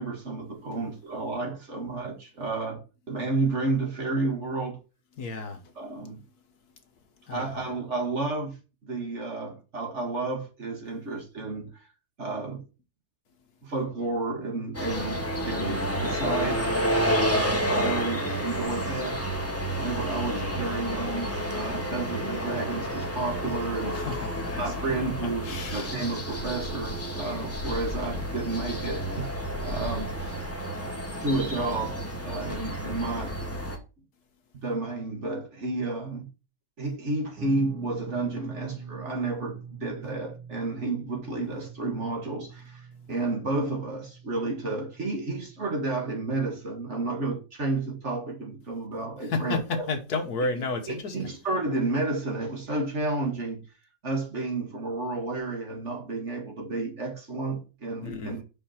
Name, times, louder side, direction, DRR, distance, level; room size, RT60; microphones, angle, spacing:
voice 1, 0.0-2.8 3.1-4.8 5.8-6.2 7.3-8.6 8.8-11.9 12.2-12.6 13.6-16.7 17.2-19.2 19.8-24.0 24.6-30.7 31.2-32.0 32.2-33.4 34.6-36.3 36.8-49.9 50.9-53.6 54.0-58.4, right 3 dB, 40° right, 1.8 m, -31 dB
voice 2, 5.2-5.7 7.3-7.5 23.9-24.7 25.4-25.9 49.2-51.2 58.0-58.4, left 3 dB, 60° left, 1.6 m, -32 dB
sound 1, 14.7-33.8, equal, 10° left, 1.0 m, -30 dB
Guitar, 37.4-46.6, right 6 dB, 80° right, 2.0 m, -44 dB
5.6 x 5.3 x 5.6 m
omnidirectional pair, 1.9 m